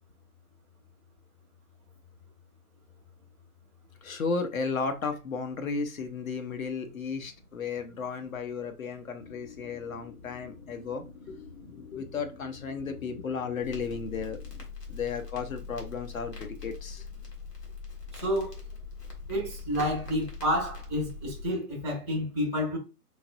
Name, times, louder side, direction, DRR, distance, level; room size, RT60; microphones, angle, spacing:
voice 1, 4.0-14.4 14.9-17.1, left 5 dB, 60° left, 1.0 m, -34 dB
sound 1, 9.2-14.7, left 5 dB, 35° left, 1.2 m, -49 dB
Crackle, 13.6-21.5, left 5 dB, 90° left, 1.8 m, -42 dB
voice 2, 18.1-18.6 19.3-22.8, equal, 5° left, 0.6 m, -29 dB
4.6 x 3.2 x 2.6 m
figure-of-eight pair, 145°, 47 cm